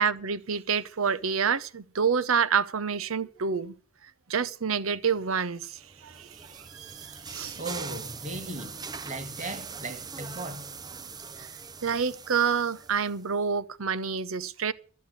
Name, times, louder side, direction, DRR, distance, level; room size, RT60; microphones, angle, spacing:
voice 1, 0.0-3.7 4.3-7.6 11.4-11.5 11.8-14.7, right 6 dB, 80° right, 0.8 m, -28 dB
sound 1, 5.8-13.3, right 5 dB, 20° right, 0.5 m, -42 dB
voice 2, 7.5-10.9, right 2 dB, 35° right, 1.9 m, -38 dB
13.0 x 7.3 x 8.2 m
head